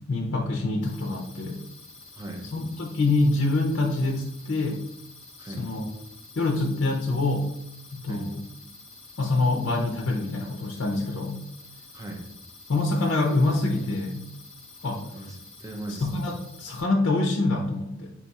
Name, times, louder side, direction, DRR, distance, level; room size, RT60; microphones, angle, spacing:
voice 1, 0.0-1.6 2.5-4.8 5.4-5.9 6.4-7.5 7.9-8.4 9.2-11.4 12.7-14.3 14.8-15.0 15.9-16.3 16.6-18.1, left 2 dB, 60° left, 0 dB, 0.5 m, -25 dB
sound 1, 0.8-16.8, left 3 dB, 5° left, 0.9 m, -48 dB
voice 2, 2.2-2.5 5.4-5.7 8.1-8.3 11.9-12.3 15.1-16.3, right 1 dB, 15° right, 1 dB, 0.5 m, -38 dB
3.9 x 2.3 x 4.0 m, 0.79 s
head